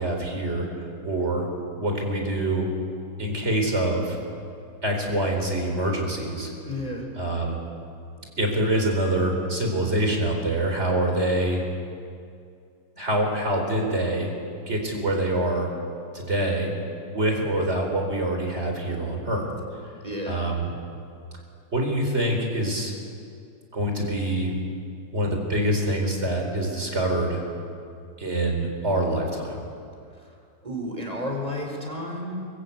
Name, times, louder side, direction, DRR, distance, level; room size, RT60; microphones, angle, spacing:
voice 1, 0.0-1.5 1.8-2.7 3.2-4.2 4.8-6.5 7.2-7.6 8.4-11.6 13.0-14.3 14.7-15.7 16.1-16.7 17.1-19.5 20.2-20.7 21.7-22.9 23.7-24.5 25.1-27.4 28.2-29.6, right 1 dB, 40° right, 2 dB, 4.5 m, -25 dB
voice 2, 6.7-7.0 20.0-20.4 30.6-32.4, left 1 dB, 20° right, 1 dB, 4.7 m, -31 dB
23.5 x 22.5 x 8.6 m, 2.4 s
omnidirectional pair, 1.8 m